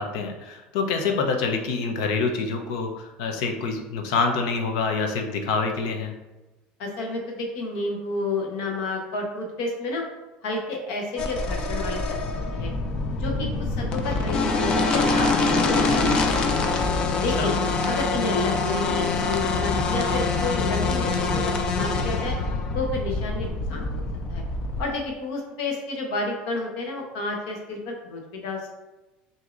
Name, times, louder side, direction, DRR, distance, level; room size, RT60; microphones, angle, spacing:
voice 1, 0.0-6.1 17.3-17.6, left 4 dB, 85° left, 4 dB, 0.7 m, -26 dB
voice 2, 6.8-10.0 10.4-12.2 12.5-12.7 13.2-16.3 16.6-16.8 17.2-17.5 17.8-22.4 22.7-24.0 24.3-24.4 24.8-28.6, left 2 dB, 65° left, 1 dB, 1.1 m, -30 dB
sound 1, 11.2-24.8, left 3 dB, 25° left, 0.4 m, -25 dB
6.1 x 2.8 x 2.5 m, 1.1 s
cardioid pair, 180°, 3 cm